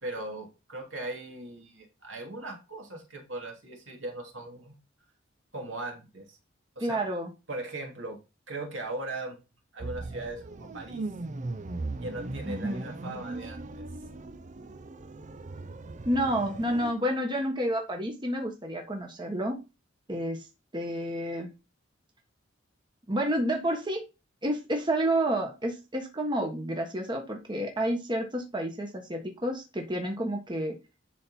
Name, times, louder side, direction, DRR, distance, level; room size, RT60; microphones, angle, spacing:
voice 1, 0.0-4.7 5.5-6.4 6.8-7.0 7.5-8.2 8.5-9.4 9.7-11.0 11.9-13.7, right 2 dB, 70° right, 1 dB, 2.8 m, -39 dB
voice 2, 6.8-7.3 12.4-12.8 16.0-19.6 20.1-20.5 20.7-21.5 23.1-24.0 24.4-30.7, right 1 dB, 25° right, 2 dB, 1.3 m, -30 dB
sound 1, 9.8-16.9, right 2 dB, 40° right, 0.6 m, -38 dB
11.0 x 4.2 x 4.2 m, 0.28 s
head